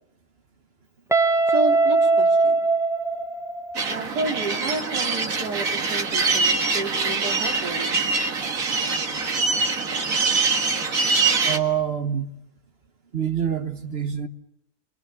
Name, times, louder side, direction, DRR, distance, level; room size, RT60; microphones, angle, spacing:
Guitar, 1.1-3.9, right 3 dB, ahead, 0.7 m, -20 dB
voice 1, 1.5-2.6 3.9-8.2, right 2 dB, 80° right, 4.2 m, -31 dB
sound 1, 3.8-11.6, right 4 dB, 55° right, 2.1 m, -24 dB
voice 2, 11.4-12.3 13.1-14.3, right 9 dB, 40° right, 1.5 m, -26 dB
30.0 x 22.5 x 7.0 m
omnidirectional pair, 1.7 m